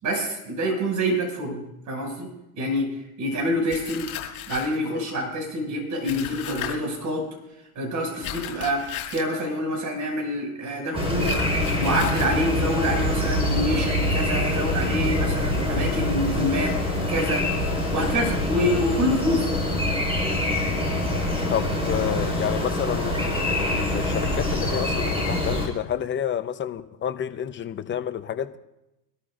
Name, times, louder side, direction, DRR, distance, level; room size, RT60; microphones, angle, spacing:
voice 1, 0.0-2.3 2.6-2.9 3.2-4.1 4.5-7.3 7.7-11.3 11.8-16.8 17.1-17.5 17.9-19.5, equal, 40° right, 1 dB, 6.5 m, -26 dB
sound 1, 3.7-4.8 6.0-6.7 8.2-9.3 11.2-12.3, left 12 dB, 50° left, 5.2 m, -35 dB
sound 2, 10.9-25.7, left 1 dB, 10° right, 5.0 m, -25 dB
voice 2, 21.5-28.6, left 9 dB, 25° left, 10 dB, 0.8 m, -30 dB
25.0 x 13.0 x 2.6 m, 0.91 s
hypercardioid pair, 100°, 47 cm